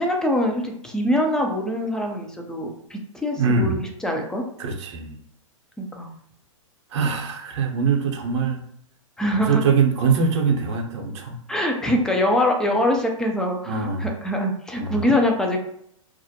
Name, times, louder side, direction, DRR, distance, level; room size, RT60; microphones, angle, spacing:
voice 1, 0.0-4.4 5.8-6.1 9.2-9.6 11.5-15.6, left 1 dB, 5° left, 2 dB, 0.3 m, -23 dB
voice 2, 3.3-3.8 4.6-5.2 6.9-8.6 9.3-11.4 13.7-14.1 14.8-15.0, right 5 dB, 55° right, 2 dB, 0.7 m, -23 dB
2.4 x 2.0 x 2.7 m, 0.72 s
hypercardioid pair, 120°, 17 cm